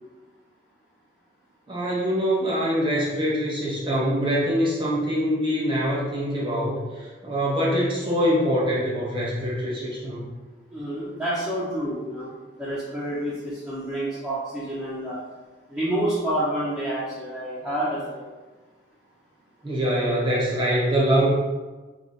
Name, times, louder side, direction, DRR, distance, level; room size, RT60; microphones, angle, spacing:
voice 1, 1.7-10.3 19.6-21.3, equal, 25° right, -6 dB, 1.1 m, -24 dB
voice 2, 10.7-12.3 12.6-15.2 15.7-18.2, right 1 dB, 10° right, -10 dB, 0.8 m, -28 dB
3.2 x 3.2 x 4.1 m, 1.3 s
head